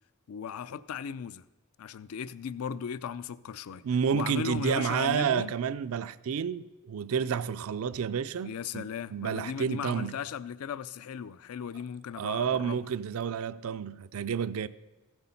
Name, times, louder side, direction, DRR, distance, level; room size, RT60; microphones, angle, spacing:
voice 1, 0.3-1.4 1.8-3.8 4.1-5.5 8.4-12.8, left 7 dB, 75° left, 0.4 m, -37 dB
voice 2, 3.8-10.2 12.2-14.7, right 7 dB, 70° right, 0.4 m, -30 dB
15.0 x 7.8 x 5.7 m
head